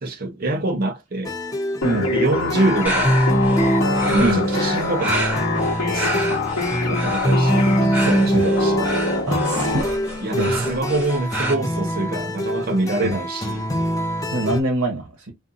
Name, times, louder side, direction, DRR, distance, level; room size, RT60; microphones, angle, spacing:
voice 1, 0.0-1.3 2.1-3.8 4.1-5.1 5.9-6.3 6.9-7.7 8.1-8.9 10.2-13.6, right 2 dB, 45° right, 0.6 m, -25 dB
sound 1, 1.2-14.6, equal, 15° left, 0.4 m, -24 dB
sound 2, 1.8-9.8, left 3 dB, 85° left, 1.0 m, -25 dB
sound 3, 2.8-11.5, right 1 dB, 5° right, 0.9 m, -29 dB
voice 2, 7.8-8.5 9.3-9.8 10.3-10.7 13.0-13.2 14.3-15.3, right 1 dB, 85° right, 1.0 m, -25 dB
2.6 x 2.5 x 2.6 m
head